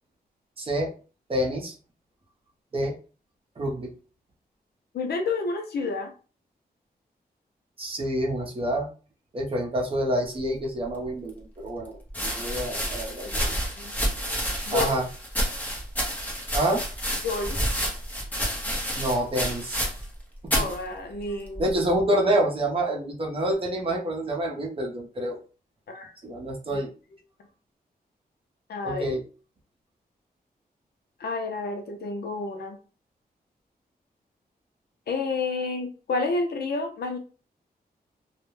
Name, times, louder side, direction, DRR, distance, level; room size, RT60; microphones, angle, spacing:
voice 1, 0.6-0.9 1.3-1.7 2.7-2.9 3.6-3.9 7.8-8.9 9.3-13.5 14.7-15.1 16.5-16.8 19.0-19.9 21.6-25.4 26.2-26.9 28.8-29.2, right 1 dB, 35° right, -1 dB, 0.6 m, -27 dB
voice 2, 4.9-6.1 13.2-13.4 13.8-14.0 14.6-14.9 17.2-17.6 20.5-21.8 25.9-26.4 26.7-26.9 28.7-29.2 31.2-32.8 35.1-37.2, left 3 dB, 80° left, 4 dB, 0.6 m, -30 dB
sound 1, 11.0-11.1 12.1-20.2 20.4-20.8 21.5-21.9, equal, 10° left, 0.7 m, -29 dB
2.3 x 2.1 x 3.1 m, 0.37 s
wide cardioid pair, 135°, 16 cm